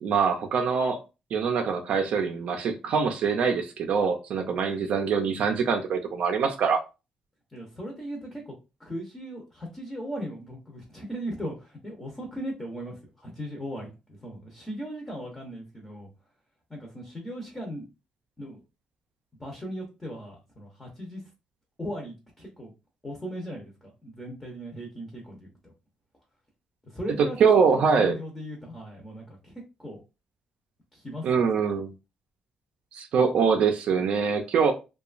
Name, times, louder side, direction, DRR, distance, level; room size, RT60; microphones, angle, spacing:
voice 1, 0.0-1.0 1.3-6.8 27.2-28.1 31.2-31.9 32.9-34.7, right 6 dB, 60° right, 0.4 m, -24 dB
voice 2, 7.5-8.5 8.8-16.1 16.7-17.8 18.4-18.6 19.4-21.2 21.8-22.7 23.0-25.7 26.8-27.4 27.7-30.0 30.9-31.3, equal, 10° left, 0.7 m, -38 dB
2.8 x 2.2 x 2.4 m
cardioid pair, 150°, 2 cm